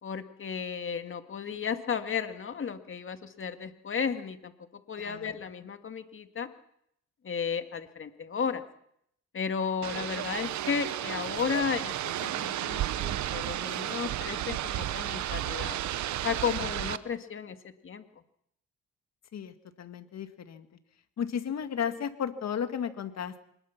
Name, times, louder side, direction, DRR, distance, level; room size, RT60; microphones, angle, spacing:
voice 1, 0.0-4.5 4.9-6.5 7.2-8.6 9.3-15.8 16.2-17.6 17.8-18.0, left 6 dB, 40° left, 8 dB, 2.2 m, -33 dB
voice 2, 5.0-5.4 16.6-16.7 19.3-20.7 21.2-23.4, left 8 dB, 60° left, 9 dB, 2.2 m, -34 dB
sound 1, 9.8-17.0, right 12 dB, 70° right, 1.0 m, -33 dB
25.0 x 20.5 x 6.0 m, 0.72 s
cardioid pair, 90°, 30 cm